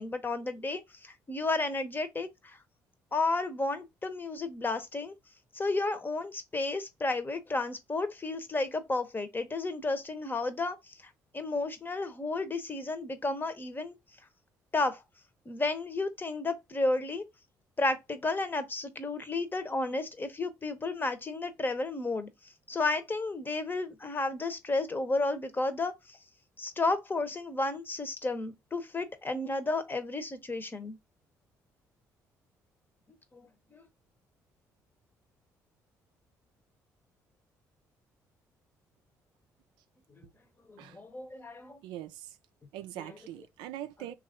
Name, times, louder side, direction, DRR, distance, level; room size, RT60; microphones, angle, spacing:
voice 1, 0.0-2.6 3.1-5.1 5.5-10.8 11.3-14.0 14.7-15.0 15.5-17.2 17.8-22.3 22.7-26.2 26.6-30.9 33.3-33.5 33.7-33.8 40.7-41.8 43.0-43.2, left 3 dB, 25° left, 0.8 m, -32 dB
voice 2, 41.8-42.3 42.7-44.1, right 13 dB, 80° right, 0.3 m, -42 dB
3.1 x 2.4 x 3.6 m
supercardioid pair, 60°, 8 cm